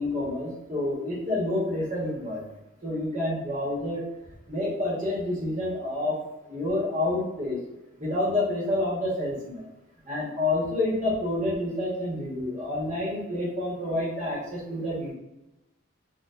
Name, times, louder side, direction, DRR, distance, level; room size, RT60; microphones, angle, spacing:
voice 1, 0.0-2.4 2.8-4.0 4.5-6.2 6.5-7.6 8.0-9.7 10.1-15.1, left 1 dB, 35° right, -6 dB, 1.2 m, -28 dB
4.4 x 2.4 x 2.5 m, 0.96 s
head